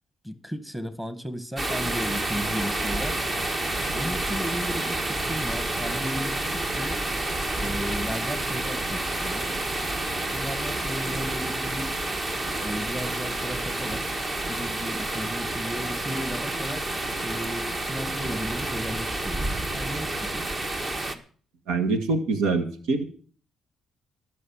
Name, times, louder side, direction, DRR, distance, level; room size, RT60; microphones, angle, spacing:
voice 1, 0.2-3.2 3.9-7.0 7.5-9.5 10.3-11.9 12.6-14.1 14.5-20.5, equal, 10° right, 11 dB, 1.9 m, -35 dB
sound 1, 1.6-21.1, right 2 dB, 35° right, 1.7 m, -29 dB
voice 2, 21.7-23.0, right 3 dB, 90° right, 9 dB, 1.7 m, -24 dB
18.0 x 6.5 x 7.3 m, 0.43 s
cardioid pair, 90°, 0 cm